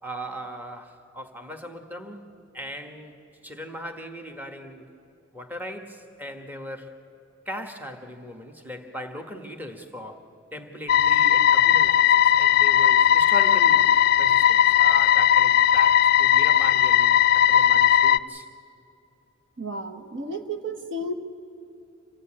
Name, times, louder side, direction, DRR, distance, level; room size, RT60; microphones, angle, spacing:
voice 1, 0.0-3.1 3.4-4.9 5.3-6.9 7.4-10.2 10.5-13.9 14.2-18.5, equal, 10° right, 5 dB, 1.4 m, -39 dB
sound 1, 10.9-18.2, left 10 dB, 50° left, 0.4 m, -18 dB
voice 2, 19.6-21.1, right 1 dB, 60° right, 5 dB, 1.3 m, -32 dB
26.5 x 16.0 x 8.7 m, 2.9 s
head